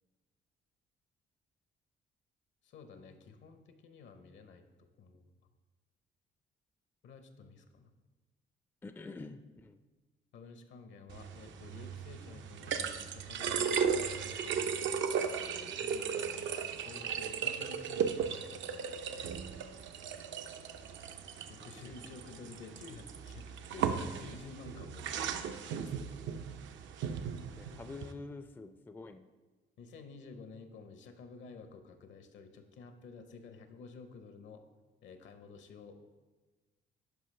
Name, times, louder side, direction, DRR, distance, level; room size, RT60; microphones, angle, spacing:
voice 1, 2.6-5.5 7.0-7.9 10.3-19.2 21.5-25.9 29.8-34.6 35.0-36.1, left 4 dB, 70° left, 8 dB, 0.8 m, -52 dB
voice 2, 8.8-9.8 21.8-21.9 27.6-29.2, left 3 dB, 10° left, 9 dB, 0.3 m, -47 dB
sound 1, 11.1-28.1, right 7 dB, 70° right, 0.5 m, -36 dB
11.0 x 4.9 x 3.2 m, 1.3 s
cardioid pair, 90°, 20 cm